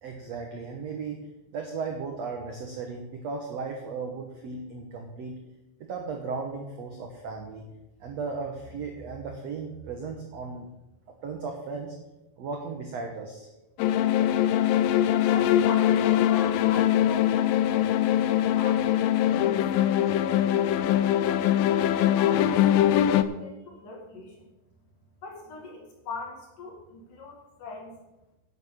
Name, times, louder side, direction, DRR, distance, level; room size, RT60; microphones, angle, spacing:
voice 1, 0.0-5.4 5.8-7.7 8.0-10.7 11.2-11.9 12.4-13.5 14.2-14.4, right 4 dB, 70° right, 2 dB, 1.6 m, -36 dB
sound 1, 13.8-23.2, left 11 dB, 90° left, 2.0 m, -22 dB
voice 2, 15.3-19.0 19.4-24.5 25.2-27.9, left 3 dB, 55° left, 0 dB, 3.5 m, -42 dB
11.0 x 7.9 x 6.6 m, 0.99 s
omnidirectional pair, 4.7 m